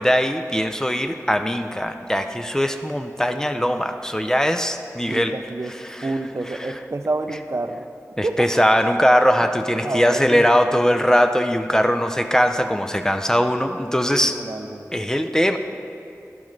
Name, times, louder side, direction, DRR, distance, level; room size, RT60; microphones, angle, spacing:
voice 1, 0.0-5.3 5.8-6.1 8.2-14.4 14.9-15.6, equal, 10° left, 7 dB, 0.5 m, -20 dB
voice 2, 5.1-5.7 6.0-7.9 8.2-8.5 9.4-9.5 9.8-10.5 14.1-15.1, right 2 dB, 55° right, 8 dB, 0.4 m, -28 dB
11.0 x 8.6 x 3.2 m, 2.6 s
wide cardioid pair, 40°, 6 cm